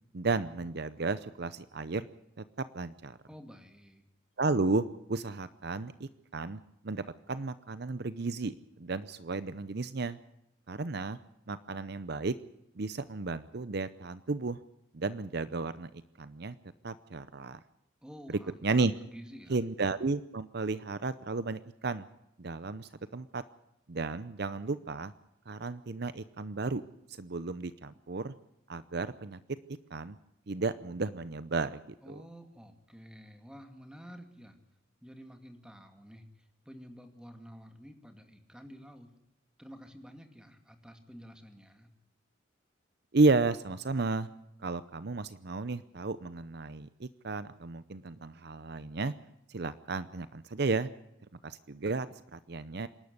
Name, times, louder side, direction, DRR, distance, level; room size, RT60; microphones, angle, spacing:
voice 1, 0.1-2.1 2.4-3.2 4.4-10.2 10.7-11.2 11.5-12.3 12.8-14.6 14.9-15.9 16.2-16.5 16.8-17.6 18.3-18.9 19.5-22.1 22.4-23.4 23.9-25.1 25.5-26.8 27.1-28.3 28.7-29.4 29.9-30.2 30.5-32.2 43.1-44.3 44.6-49.1 49.5-50.9 51.4-52.9, right 3 dB, 55° right, 14 dB, 0.7 m, -33 dB
voice 2, 3.3-4.0 18.0-19.7 32.0-34.6 35.0-39.1 39.6-41.9, equal, 5° right, 6 dB, 2.5 m, -51 dB
26.5 x 12.0 x 9.6 m, 0.84 s
head